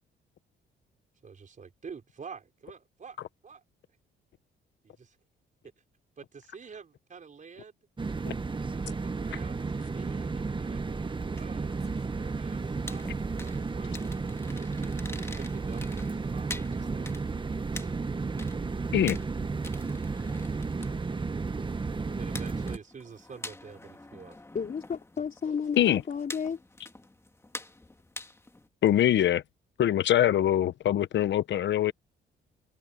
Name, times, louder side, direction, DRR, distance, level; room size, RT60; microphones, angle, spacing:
voice 1, 1.2-3.6 4.8-5.2 6.2-7.8 8.7-10.8 11.4-11.8 12.1-17.9 22.2-24.4 25.4-25.6, right 5 dB, 40° right, 4.6 m, -48 dB
sound 1, 8.0-22.8, right 4 dB, 25° right, 1.4 m, -33 dB
sound 2, 10.6-28.7, left 2 dB, 15° left, 1.8 m, -47 dB
voice 2, 24.5-26.6, left 6 dB, 45° left, 3.5 m, -32 dB
voice 3, 28.8-29.4 29.8-31.9, left 11 dB, 65° left, 1.0 m, -23 dB
cardioid pair, 90°, 20 cm